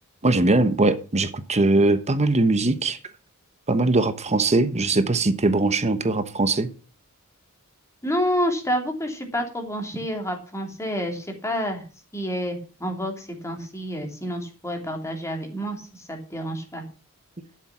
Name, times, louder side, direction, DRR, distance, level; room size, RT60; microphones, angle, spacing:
voice 1, 0.2-3.0 3.7-6.7, right 2 dB, 30° right, 1.1 m, -21 dB
voice 2, 8.0-11.8 12.1-16.8, equal, 15° left, 3.0 m, -29 dB
12.5 x 7.4 x 6.1 m
head